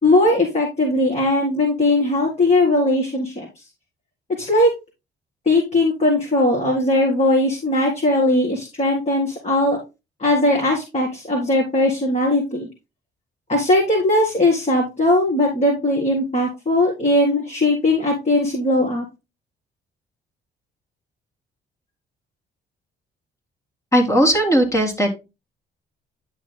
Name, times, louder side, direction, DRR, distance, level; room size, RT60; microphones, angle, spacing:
voice 1, 0.0-3.5 4.4-4.7 5.5-9.8 10.2-12.7 13.5-19.0, left 1 dB, 35° left, -2 dB, 3.8 m, -19 dB
voice 2, 23.9-25.1, equal, 15° left, 3 dB, 3.1 m, -17 dB
12.5 x 6.4 x 2.2 m, 0.25 s
cardioid pair, 90°, 20 cm